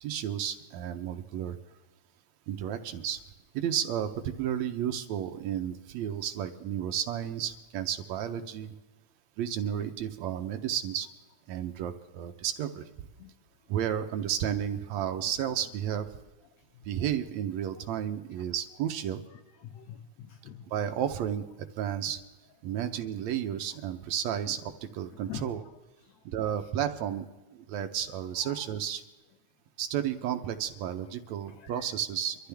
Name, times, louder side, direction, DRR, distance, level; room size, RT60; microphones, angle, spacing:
voice 1, 0.0-1.6 2.5-3.2 3.5-8.7 9.4-11.1 11.5-12.9 13.7-16.1 16.9-19.2 20.7-21.4 21.8-22.2 22.6-25.6 26.3-27.3 27.5-29.0 29.8-32.5, right 10 dB, 70° right, 7 dB, 1.8 m, -32 dB
voice 2, 19.6-20.7 25.3-25.5 28.4-28.6 31.0-31.1 31.4-31.8, left 10 dB, 80° left, 6 dB, 1.6 m, -44 dB
24.0 x 13.5 x 3.5 m, 1.2 s
omnidirectional pair, 3.6 m